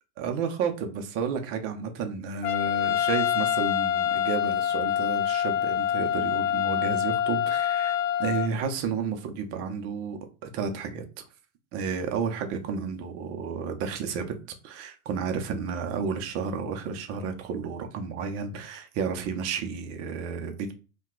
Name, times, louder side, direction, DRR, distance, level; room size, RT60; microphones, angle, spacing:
voice 1, 0.2-11.0 11.7-14.4 14.6-20.7, right 5 dB, 30° right, 5 dB, 0.5 m, -32 dB
Trumpet, 2.4-8.5, left 10 dB, 55° left, 0.5 m, -26 dB
2.7 x 2.2 x 3.6 m, 0.33 s
hypercardioid pair, 110°, 46 cm